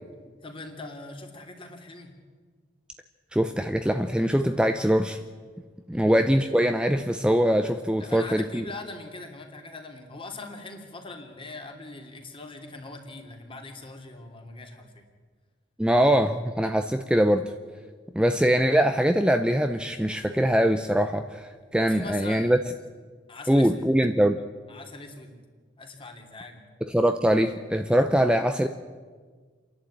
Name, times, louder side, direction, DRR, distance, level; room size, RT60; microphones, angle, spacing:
voice 1, 0.4-2.1 5.9-6.2 8.0-15.0 21.9-22.7 23.3-23.7 24.7-25.4 25.8-26.6, left 2 dB, 30° left, 3 dB, 2.9 m, -41 dB
voice 2, 3.3-5.2 5.9-8.7 15.8-17.5 18.1-22.6 23.5-24.4 26.8-28.7, equal, 5° right, 7 dB, 0.7 m, -22 dB
29.5 x 11.5 x 8.8 m, 1.5 s
head